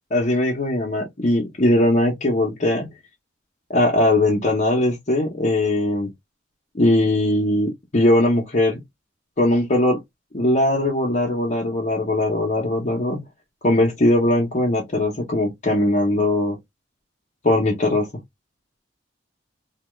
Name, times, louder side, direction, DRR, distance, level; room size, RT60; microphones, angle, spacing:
voice 1, 0.1-2.9 3.7-6.1 6.7-8.8 9.4-10.0 10.3-13.2 13.6-16.6 17.4-18.1, left 1 dB, 40° left, 0.7 m, -20 dB
2.8 x 2.2 x 3.1 m
head